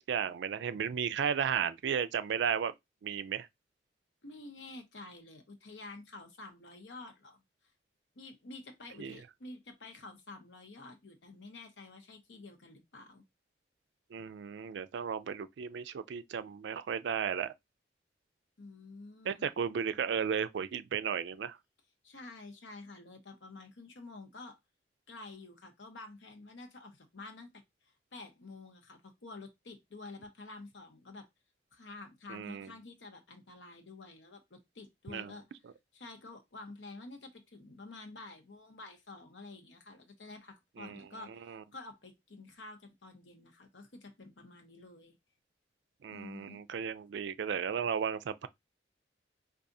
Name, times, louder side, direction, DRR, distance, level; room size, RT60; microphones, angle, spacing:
voice 1, 0.1-2.7 3.0-3.5 9.0-9.2 14.1-17.5 19.3-21.6 32.3-32.7 35.1-35.3 40.8-41.0 41.5-41.6 46.0-48.5, right 7 dB, 75° right, 0.3 m, -34 dB
voice 2, 4.2-7.4 8.2-13.2 18.6-19.6 22.0-24.6 25.1-27.6 28.1-31.3 31.7-35.4 35.9-45.1 46.1-46.6, left 3 dB, 85° left, 0.9 m, -49 dB
4.7 x 2.4 x 2.6 m
head